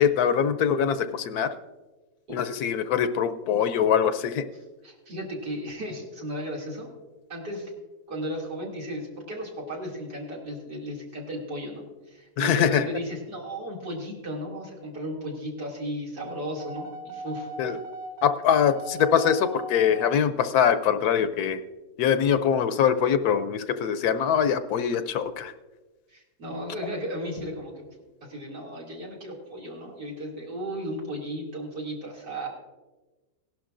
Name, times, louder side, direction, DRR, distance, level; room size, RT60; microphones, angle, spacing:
voice 1, 0.0-1.5 2.3-4.4 12.4-12.8 17.6-17.8 18.2-21.6 22.0-25.5, left 8 dB, 75° left, 11 dB, 1.1 m, -23 dB
voice 2, 4.8-6.9 7.3-7.7 8.1-17.5 26.1-27.8 28.2-32.5, equal, 85° right, -3 dB, 3.2 m, -35 dB
sound 1, 16.2-20.1, right 2 dB, 60° right, 2.1 m, -38 dB
17.5 x 11.5 x 2.5 m, 1.2 s
omnidirectional pair, 1.7 m